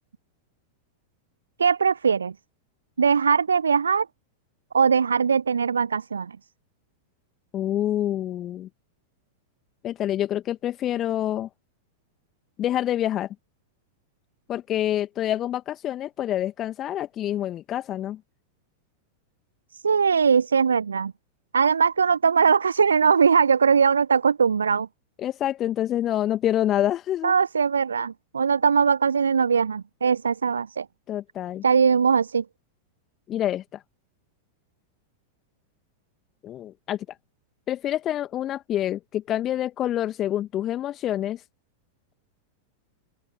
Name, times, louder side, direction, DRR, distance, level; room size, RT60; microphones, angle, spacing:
voice 1, 1.6-2.3 3.0-4.1 4.7-6.4 19.7-21.1 21.5-24.9 27.2-30.9 31.6-32.4, right 6 dB, 70° right, 0.8 m, -21 dB
voice 2, 7.5-8.7 9.8-11.5 12.6-13.3 14.5-18.2 25.2-27.3 31.1-31.6 33.3-33.8 36.4-37.0 37.7-41.4, left 12 dB, 30° left, 1.7 m, -27 dB
open air
figure-of-eight pair, 90°, 0 cm